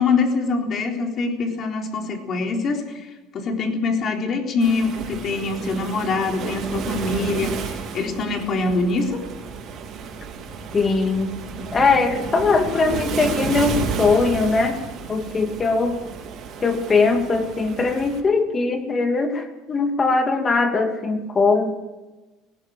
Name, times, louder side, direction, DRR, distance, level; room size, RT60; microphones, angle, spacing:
voice 1, 0.0-9.2, left 3 dB, 40° left, 2 dB, 3.9 m, -24 dB
Waves surf, 4.6-18.2, right 5 dB, 45° right, 4.2 m, -32 dB
voice 2, 10.7-11.3 11.7-14.8 15.1-16.0 16.6-21.8, left 4 dB, 25° left, 6 dB, 2.6 m, -20 dB
18.5 x 18.0 x 7.7 m, 1.1 s
cardioid pair, 130°, 0 cm